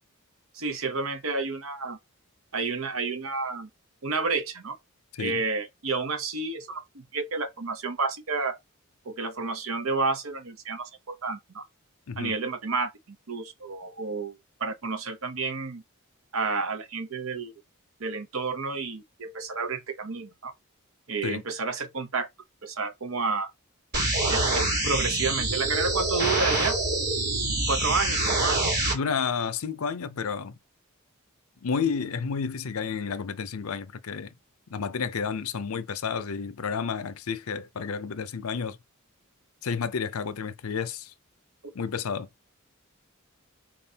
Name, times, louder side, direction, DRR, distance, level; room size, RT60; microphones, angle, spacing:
voice 1, 0.5-2.0 2.5-3.7 4.0-4.8 5.2-8.6 9.1-11.6 12.2-12.9 13.3-15.8 16.3-17.5 18.0-20.5 21.1-22.3 22.6-23.5 24.2-26.8 27.7-28.7 41.6-41.7, right 4 dB, 70° right, 0.8 m, -30 dB
sound 1, 23.9-28.9, right 2 dB, 50° right, 3.3 m, -25 dB
voice 2, 28.9-30.6 31.6-34.3 34.7-38.8 39.6-41.1 41.7-42.3, left 6 dB, 80° left, 0.6 m, -31 dB
4.5 x 3.7 x 2.8 m
head